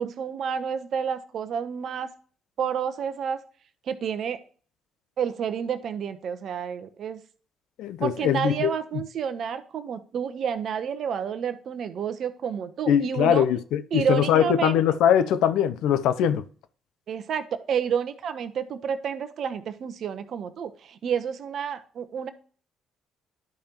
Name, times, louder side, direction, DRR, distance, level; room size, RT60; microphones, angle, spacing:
voice 1, 0.0-2.1 2.6-3.4 3.9-4.4 5.2-7.2 8.0-13.5 13.9-14.8 17.1-22.3, right 7 dB, 60° right, 0.9 m, -30 dB
voice 2, 7.8-8.7 12.9-16.5, left 9 dB, 70° left, 0.6 m, -22 dB
11.5 x 5.2 x 2.9 m
hypercardioid pair, 50°, 0 cm